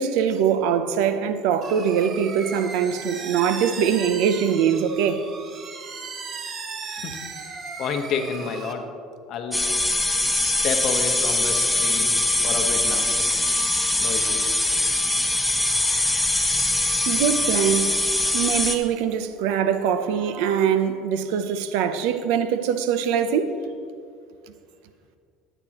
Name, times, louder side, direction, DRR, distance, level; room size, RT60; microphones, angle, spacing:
voice 1, 0.0-5.3 17.1-18.0 18.3-23.6, right 8 dB, 80° right, 0.6 m, -23 dB
sound 1, 1.6-8.7, right 5 dB, 40° right, 0.9 m, -36 dB
voice 2, 7.8-8.9 9.3-9.7 10.4-12.2 12.4-13.1 14.0-14.5, left 6 dB, 55° left, 1.0 m, -30 dB
sound 2, 9.5-18.8, left 2 dB, 5° left, 0.7 m, -22 dB
13.5 x 8.9 x 3.0 m
supercardioid pair, 115°, 0 cm